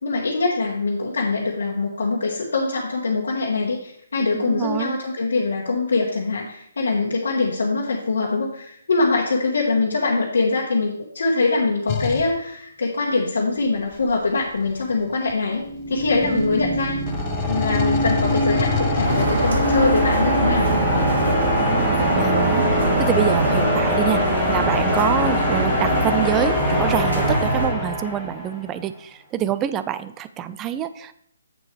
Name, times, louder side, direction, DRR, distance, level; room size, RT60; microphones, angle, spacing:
voice 1, 0.0-17.0 17.5-20.8, left 3 dB, 75° left, -3 dB, 1.3 m, -23 dB
voice 2, 4.3-5.0 16.2-16.8 21.6-22.6 23.0-24.2 24.5-31.1, right 10 dB, 15° right, 13 dB, 0.4 m, -26 dB
sound 1, 11.9-12.4 13.7-15.6 16.0-20.1, left 9 dB, 30° left, 0.7 m, -29 dB
sound 2, 15.5-28.6, equal, 5° left, 1.6 m, -23 dB
sound 3, 19.0-27.7, right 2 dB, 75° right, 2.0 m, -24 dB
7.6 x 7.5 x 3.3 m, 0.69 s
hypercardioid pair, 155°, 0 cm